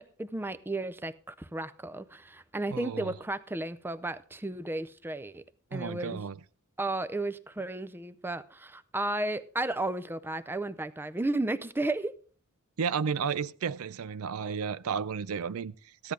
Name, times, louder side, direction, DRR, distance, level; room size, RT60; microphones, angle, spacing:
voice 1, 0.0-5.4 5.7-6.2 6.8-12.1, right 2 dB, 10° right, 0.5 m, -33 dB
voice 2, 2.7-3.1 5.7-6.4 12.8-16.1, right 6 dB, 65° right, 0.4 m, -33 dB
15.0 x 10.5 x 3.8 m
head